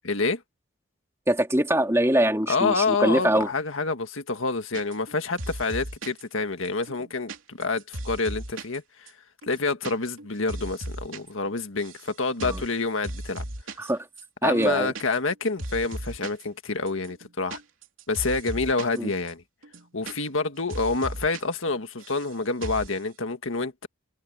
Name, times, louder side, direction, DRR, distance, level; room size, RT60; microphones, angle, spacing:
voice 1, 0.0-0.4 2.5-9.1 9.4-13.4 14.4-17.6 18.1-19.4 19.9-23.9, left 3 dB, 90° left, 1.8 m, -28 dB
voice 2, 1.3-3.5 12.4-12.6 13.8-14.1 14.4-14.9 19.0-19.1, right 1 dB, 15° right, 2.7 m, -23 dB
sound 1, 4.7-5.1 5.4-6.2 6.6-8.8 9.1-9.2 9.4-9.9 10.2-11.2 11.5-12.1 12.4-12.7 13.0-13.9 14.2-14.3 14.5-15.3 15.6-16.4 16.9-19.0 19.3-19.4 19.6-20.4 20.7-21.4 21.7-22.3 22.6-22.9, right 1 dB, 90° right, 3.2 m, -36 dB
head